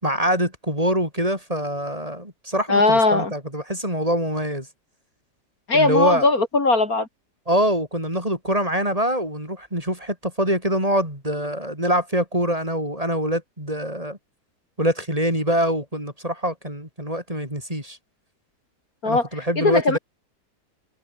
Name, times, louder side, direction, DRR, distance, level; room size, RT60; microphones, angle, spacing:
voice 1, 0.0-4.7 5.7-6.3 7.5-14.2 14.8-18.0 19.0-20.0, equal, 20° right, 8.1 m, -24 dB
voice 2, 2.7-3.3 5.7-7.1 19.0-19.3 19.6-20.0, left 3 dB, 55° left, 3.6 m, -19 dB
omnidirectional pair, 1.8 m